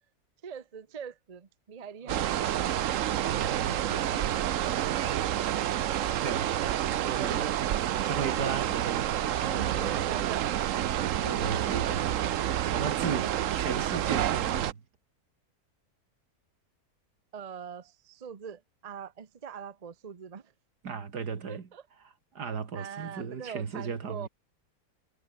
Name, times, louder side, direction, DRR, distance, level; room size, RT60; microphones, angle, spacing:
voice 1, 0.4-2.3 6.0-6.2 6.8-7.5 9.4-10.4 13.2-13.4 17.3-20.4 21.5-21.8 22.7-24.3, right 7 dB, 30° right, 0.8 m, -42 dB
sound 1, 2.1-14.7, right 11 dB, 60° right, 1.0 m, -29 dB
voice 2, 2.1-2.5 3.3-4.3 6.1-6.5 7.2-7.5 8.1-9.1 9.5-10.0 11.1-12.2 12.6-14.8 20.8-21.7 22.3-24.3, right 6 dB, 75° right, 2.7 m, -36 dB
omnidirectional pair, 1.7 m